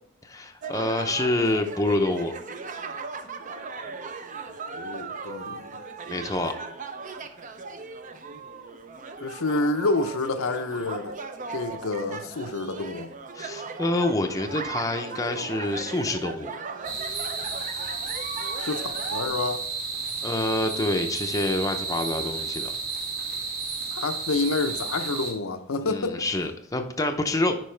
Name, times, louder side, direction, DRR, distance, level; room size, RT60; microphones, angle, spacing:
voice 1, 0.2-2.3 6.1-6.5 13.3-16.6 20.2-22.7 25.8-27.6, left 2 dB, 15° left, 0.6 m, -27 dB
sound 1, 0.6-19.3, right 4 dB, 40° right, 0.6 m, -37 dB
voice 2, 4.7-5.8 9.2-11.2 11.5-13.1 18.6-19.6 23.9-26.3, left 3 dB, 75° left, 0.7 m, -28 dB
sound 2, 16.8-25.3, right 4 dB, 65° right, 2.5 m, -32 dB
10.5 x 4.6 x 3.3 m
head